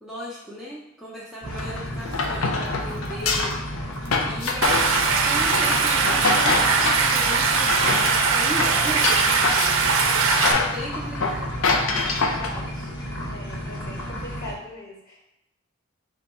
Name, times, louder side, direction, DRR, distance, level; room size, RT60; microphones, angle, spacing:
voice 1, 0.0-3.6 4.3-9.1 10.4-11.5, equal, ahead, -7 dB, 0.5 m, -36 dB
sound 1, 1.4-14.5, equal, 65° left, 1.1 m, -33 dB
sound 2, 1.5-7.1 7.5-10.0 10.3-12.6, left 3 dB, 90° left, 0.5 m, -26 dB
Stream, 4.6-10.5, right 5 dB, 75° right, 0.5 m, -21 dB
voice 2, 12.0-12.9 13.2-15.2, left 1 dB, 45° left, -3 dB, 1.2 m, -40 dB
5.1 x 2.2 x 4.1 m, 0.87 s
head